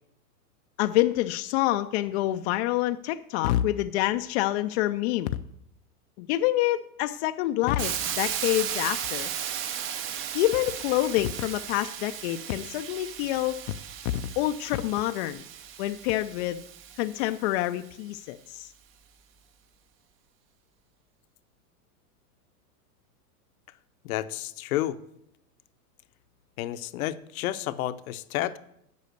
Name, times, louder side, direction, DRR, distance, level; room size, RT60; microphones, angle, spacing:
voice 1, 0.8-5.3 6.2-9.3 10.3-13.6 14.4-15.4 15.8-16.6 17.0-18.7, left 15 dB, 45° left, 8 dB, 0.4 m, -27 dB
Hiss, 7.8-17.7, right 9 dB, 30° right, 0.6 m, -35 dB
voice 2, 24.0-25.0 26.6-28.6, left 14 dB, 65° left, 12 dB, 0.8 m, -30 dB
8.4 x 5.6 x 7.9 m, 0.76 s
hypercardioid pair, 125°, 46 cm